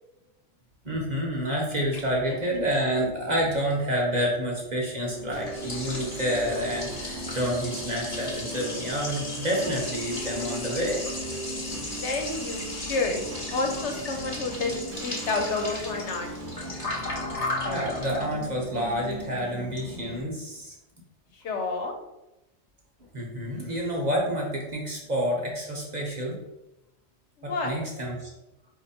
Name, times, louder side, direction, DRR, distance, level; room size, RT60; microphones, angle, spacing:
voice 1, 0.8-11.0 16.6-16.8 17.6-20.7 23.1-26.4 27.4-28.3, equal, 40° right, -2 dB, 0.9 m, -29 dB
Liquid, 5.1-20.2, left 2 dB, 35° left, 1.0 m, -36 dB
sound 1, 5.3-20.4, right 2 dB, 70° right, 1.0 m, -39 dB
voice 2, 12.0-13.2 13.5-16.3 21.3-21.9 27.4-27.8, left 3 dB, 70° left, 3 dB, 1.1 m, -30 dB
4.5 x 2.6 x 4.2 m, 0.92 s
omnidirectional pair, 1.2 m